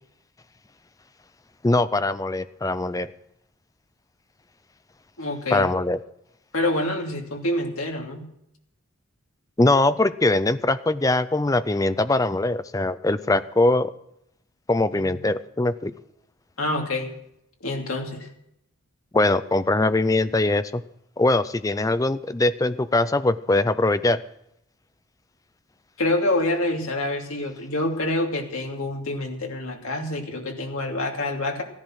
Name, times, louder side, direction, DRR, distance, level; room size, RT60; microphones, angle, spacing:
voice 1, 1.6-3.1 5.5-6.0 9.6-13.9 14.7-15.9 19.1-20.8 21.2-24.2, left 2 dB, 15° left, 13 dB, 0.4 m, -22 dB
voice 2, 5.2-5.7 6.5-8.3 16.6-17.1 17.6-18.3 26.0-31.6, left 2 dB, 75° left, 1 dB, 2.7 m, -26 dB
15.0 x 10.5 x 6.3 m, 0.78 s
head